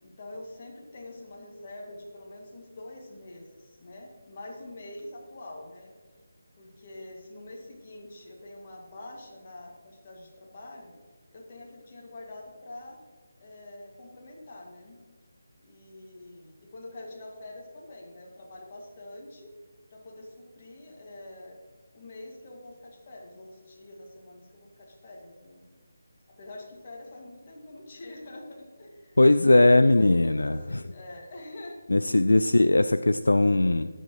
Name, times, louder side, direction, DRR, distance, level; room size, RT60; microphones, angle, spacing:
voice 1, 0.0-5.9 6.6-10.9 11.3-13.0 13.4-15.0 15.6-19.5 19.9-21.6 21.9-25.6 26.3-29.3 29.7-32.0, left 1 dB, 35° left, -1 dB, 2.2 m, -45 dB
voice 2, 29.2-30.8 31.9-33.9, left 2 dB, 65° left, 11 dB, 0.4 m, -20 dB
21.5 x 7.7 x 3.1 m, 1.5 s
figure-of-eight pair, 155°, 0 cm